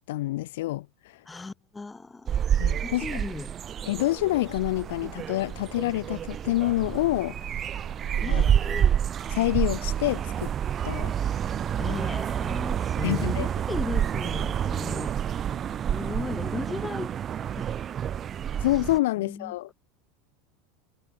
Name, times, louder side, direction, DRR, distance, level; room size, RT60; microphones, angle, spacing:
voice 1, 0.1-1.2 2.6-3.2 3.9-7.7 8.3-8.4 9.3-10.5 10.8-11.1 11.9-12.0 13.0-13.5 18.6-19.7, left 17 dB, 75° left, 0.6 m, -27 dB
voice 2, 1.3-2.4 2.8-3.5 8.2-9.0 11.8-15.1 15.9-17.1 17.5-17.7 19.2-19.7, left 3 dB, 15° left, 2.5 m, -36 dB
sound 1, 2.3-19.0, right 9 dB, 35° right, 0.7 m, -28 dB
hypercardioid pair, 95°, 0 cm